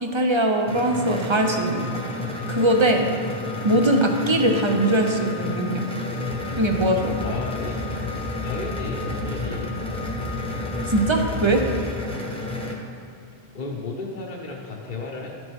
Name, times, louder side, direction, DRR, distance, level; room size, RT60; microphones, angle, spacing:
voice 1, 0.0-1.9 2.5-3.1 3.6-5.9 6.5-7.2 10.9-11.6, right 1 dB, 30° right, 3 dB, 0.6 m, -21 dB
sound 1, 0.7-12.7, left 1 dB, 5° left, 0.9 m, -31 dB
Organ, 1.3-12.1, left 10 dB, 65° right, 1.4 m, -41 dB
sound 2, 6.3-11.9, left 2 dB, 80° left, 1.4 m, -34 dB
voice 2, 7.2-7.8 8.4-9.7 13.5-15.3, left 3 dB, 50° left, -1 dB, 1.0 m, -33 dB
12.0 x 6.1 x 3.5 m, 2.4 s
omnidirectional pair, 1.1 m